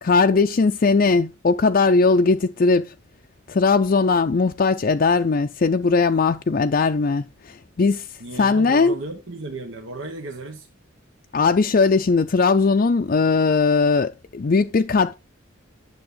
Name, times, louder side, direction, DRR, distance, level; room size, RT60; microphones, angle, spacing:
voice 1, 0.0-2.9 3.5-8.1 8.4-8.9 11.3-15.1, left 4 dB, 45° left, 0.4 m, -19 dB
voice 2, 8.2-10.7, right 3 dB, 75° right, 1.2 m, -34 dB
10.5 x 7.0 x 3.9 m
head